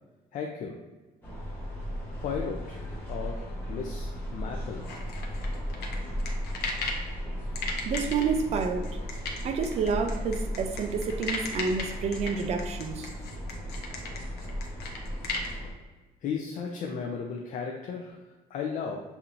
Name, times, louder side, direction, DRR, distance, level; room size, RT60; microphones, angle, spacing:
voice 1, 0.3-0.8 2.2-2.8 3.1-3.4 3.7-4.9 16.2-18.2 18.5-19.0, left 6 dB, 50° left, 0 dB, 0.5 m, -34 dB
sound 1, 1.2-15.7, equal, 15° left, 1.1 m, -36 dB
sound 2, 4.8-7.1 7.5-15.5, left 3 dB, 90° left, 0.8 m, -36 dB
voice 2, 7.8-8.9 9.4-13.1, right 5 dB, 40° right, 5 dB, 0.5 m, -29 dB
7.0 x 2.8 x 2.5 m, 1.2 s
cardioid pair, 180°, 16 cm